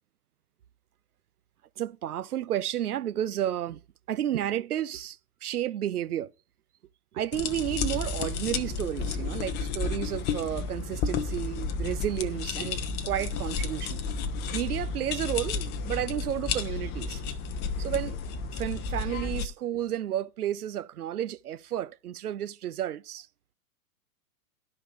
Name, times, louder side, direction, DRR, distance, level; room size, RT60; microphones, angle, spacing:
voice 1, 1.8-3.8 4.1-6.3 7.1-12.8 13.0-14.0 14.5-17.2 17.8-18.2 18.5-23.3, right 11 dB, 75° right, 0.5 m, -32 dB
sound 1, 7.3-19.5, left 4 dB, 25° left, 0.7 m, -32 dB
11.5 x 5.2 x 6.0 m
figure-of-eight pair, 100°, 45 cm